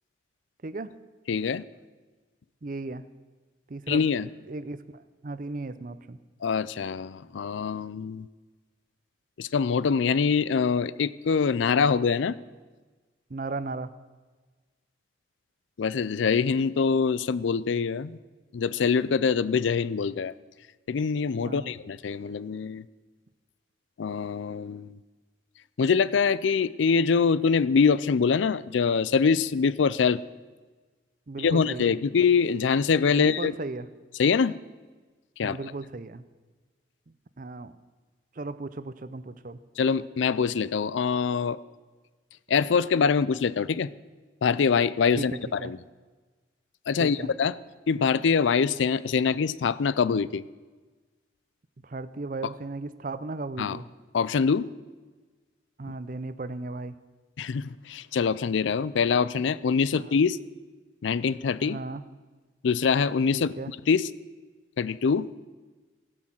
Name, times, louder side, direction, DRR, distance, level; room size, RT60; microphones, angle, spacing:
voice 1, 1.3-1.6 3.9-4.3 6.4-8.3 9.4-12.4 15.8-18.2 18.5-20.3 20.9-22.9 24.0-24.9 25.8-30.2 31.4-33.5 34.2-34.6 35.4-35.6 39.8-41.6 42.5-43.9 44.4-45.8 46.9-47.6 47.9-50.4 53.6-53.8 54.1-54.7 57.4-60.4 61.0-61.8 62.6-63.5 63.9-64.1 64.8-65.3, left 5 dB, 90° left, 18 dB, 0.4 m, -24 dB
voice 2, 2.6-3.0 3.7-4.1 4.5-4.8 5.2-6.2 13.3-13.9 21.4-21.7 31.3-32.0 33.1-33.9 35.4-36.2 37.4-37.7 38.4-39.6 45.2-45.3 45.6-45.7 47.0-47.3 51.8-53.9 55.8-56.9 59.9-60.1 61.6-62.0 63.3-63.7, right 3 dB, 45° right, 13 dB, 0.5 m, -35 dB
15.5 x 6.4 x 7.5 m, 1.3 s
head